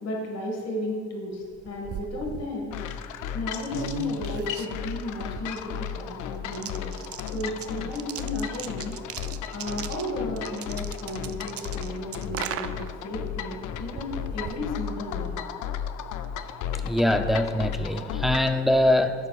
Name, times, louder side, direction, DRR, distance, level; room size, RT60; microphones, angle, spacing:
voice 1, 0.0-3.0 3.3-7.0 7.3-9.0 9.5-15.3, left 1 dB, 55° left, -1 dB, 1.9 m, -34 dB
sound 1, 1.4-15.5, right 9 dB, 50° right, 0.4 m, -40 dB
sound 2, 2.7-18.6, left 8 dB, 85° left, 0.5 m, -34 dB
voice 2, 16.8-19.1, left 1 dB, ahead, 7 dB, 0.5 m, -23 dB
15.0 x 6.6 x 2.4 m, 2.1 s
cardioid pair, 90°, 30 cm